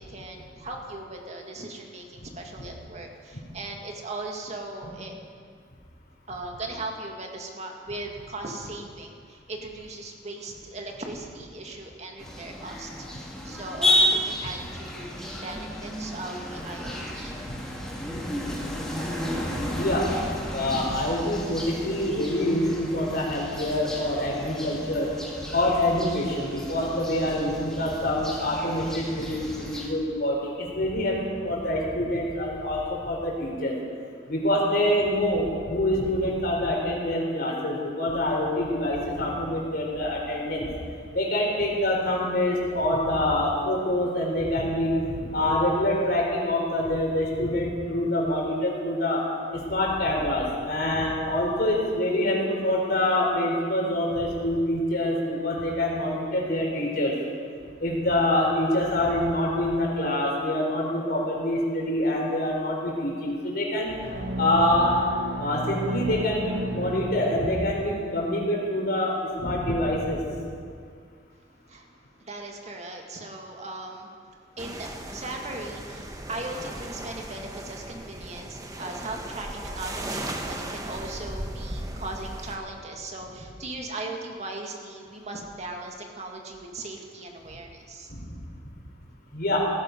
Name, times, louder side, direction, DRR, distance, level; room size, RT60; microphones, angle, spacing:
voice 1, 0.0-5.1 6.3-17.4 71.7-71.9 72.2-74.1 74.6-88.1, right 2 dB, 40° right, 1 dB, 2.1 m, -38 dB
sound 1, 12.2-29.9, left 1 dB, 5° left, 2.5 m, -32 dB
voice 2, 17.9-18.3 19.7-20.1 20.4-25.1 25.5-33.7 34.3-40.7 41.1-49.2 49.5-57.1 57.8-64.0 64.4-65.0 65.4-70.2 88.1-88.2 89.3-89.6, left 1 dB, 60° left, -2 dB, 4.2 m, -26 dB
sound 2, 64.0-67.9, right 2 dB, 65° right, 1.3 m, -33 dB
sound 3, 74.6-82.6, right 1 dB, 20° right, 1.3 m, -37 dB
17.5 x 14.0 x 5.4 m, 2.2 s
head